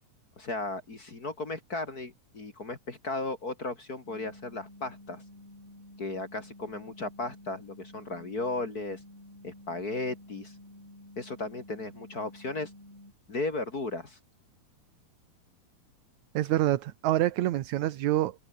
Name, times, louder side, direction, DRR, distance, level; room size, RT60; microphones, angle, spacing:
voice 1, 0.4-5.2 6.0-9.0 9.4-10.5 11.2-12.7 13.3-14.2, left 2 dB, 30° left, 2.8 m, -35 dB
sound 1, 4.0-13.1, left 1 dB, 10° left, 4.8 m, -51 dB
voice 2, 16.3-18.4, right 14 dB, 70° right, 2.3 m, -26 dB
omnidirectional pair, 3.6 m